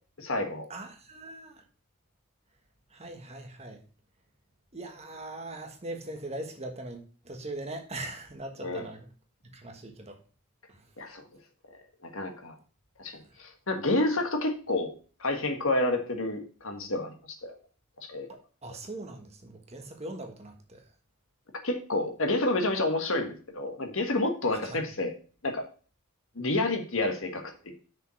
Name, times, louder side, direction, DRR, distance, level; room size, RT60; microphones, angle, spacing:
voice 1, 0.2-0.7 8.6-8.9 11.0-11.3 12.0-12.5 13.0-14.9 15.2-17.1 17.4-17.5 18.1-18.3 21.6-25.1 25.4-25.6 26.3-27.7, left 2 dB, 60° left, 1.5 m, -29 dB
voice 2, 0.7-1.6 2.9-3.8 4.7-9.1 9.4-10.2 10.7-10.8 13.1-13.2 18.6-20.9 24.6-24.8, right 2 dB, 30° right, 1.3 m, -41 dB
6.3 x 5.3 x 6.2 m
head